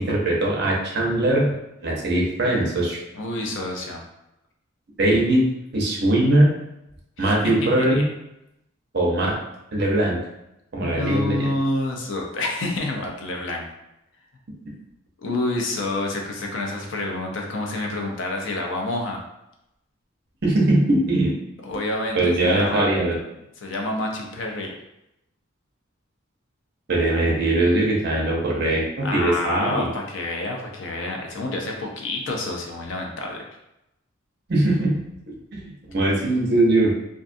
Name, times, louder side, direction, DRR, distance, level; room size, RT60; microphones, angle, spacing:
voice 1, 0.0-1.5 1.8-3.0 5.0-5.4 5.7-6.5 7.2-8.0 8.9-9.3 9.7-10.2 10.7-11.5 20.4-21.3 22.1-23.2 26.9-29.9 34.5-35.0 35.5-36.9, right 1 dB, 55° right, -2 dB, 0.6 m, -20 dB
voice 2, 3.1-4.0 7.2-8.0 10.8-13.7 15.2-19.2 21.6-22.9 23.6-24.7 29.0-33.4, left 2 dB, 65° left, 1 dB, 0.5 m, -28 dB
2.5 x 2.3 x 2.5 m, 0.87 s
head